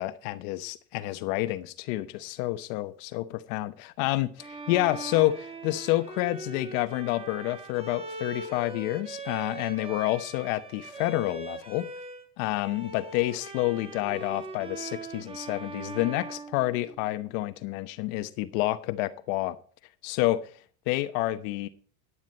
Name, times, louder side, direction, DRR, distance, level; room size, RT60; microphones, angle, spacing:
voice 1, 0.0-11.9 12.4-19.6 20.0-20.5 20.9-21.7, left 17 dB, 65° left, 1.1 m, -29 dB
Bowed string instrument, 4.4-12.2 12.5-17.3, right 3 dB, 15° right, 2.2 m, -41 dB
11.5 x 10.5 x 4.2 m
supercardioid pair, 120°, 44 cm